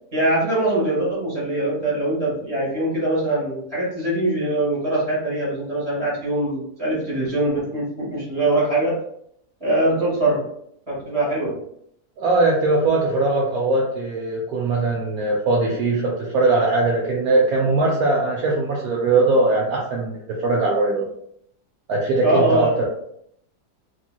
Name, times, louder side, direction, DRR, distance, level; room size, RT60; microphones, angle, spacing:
voice 1, 0.1-9.0 9.6-10.4 10.9-11.6 22.2-22.7, right 1 dB, 25° right, -7 dB, 1.3 m, -22 dB
voice 2, 12.2-21.0 21.9-22.8, right 2 dB, 70° right, -2 dB, 1.0 m, -20 dB
3.1 x 2.6 x 2.2 m, 0.71 s
omnidirectional pair, 1.7 m